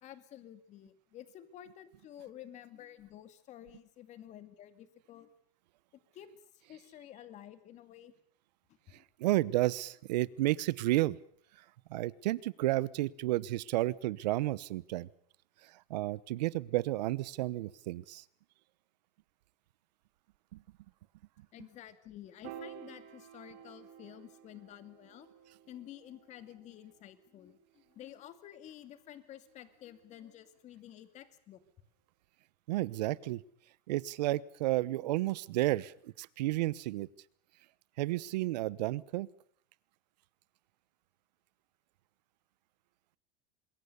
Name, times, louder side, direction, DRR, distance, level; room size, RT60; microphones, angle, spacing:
voice 1, 0.0-5.3 6.1-6.3 6.5-8.1 8.9-9.0 21.5-25.3 25.7-31.6, left 11 dB, 35° left, 11 dB, 2.4 m, -51 dB
voice 2, 9.2-11.2 11.9-15.1 15.6-18.2 20.5-20.6 32.7-33.4 33.9-37.1 38.0-39.3, right 17 dB, 80° right, 20 dB, 1.0 m, -32 dB
Piano, 22.4-28.8, right 9 dB, 60° right, 5.5 m, -53 dB
26.0 x 21.5 x 7.0 m, 0.63 s
supercardioid pair, 155°, 21 cm